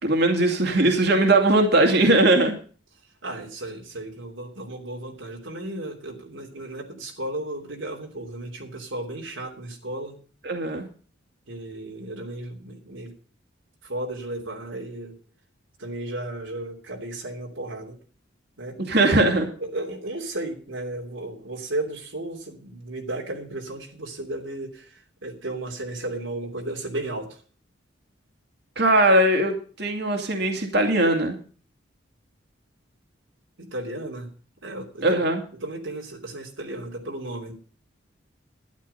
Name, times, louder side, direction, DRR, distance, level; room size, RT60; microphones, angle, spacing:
voice 1, 0.0-2.6 10.4-10.9 18.8-19.5 28.8-31.4 35.0-35.4, right 2 dB, 55° right, 3 dB, 2.4 m, -20 dB
voice 2, 3.2-10.2 11.5-13.1 13.8-15.2 15.8-17.9 18.6-18.8 19.6-27.4 33.6-34.3 34.6-35.2 35.6-37.5, right 1 dB, 80° right, 1 dB, 3.0 m, -34 dB
12.5 x 11.0 x 5.5 m, 0.41 s
head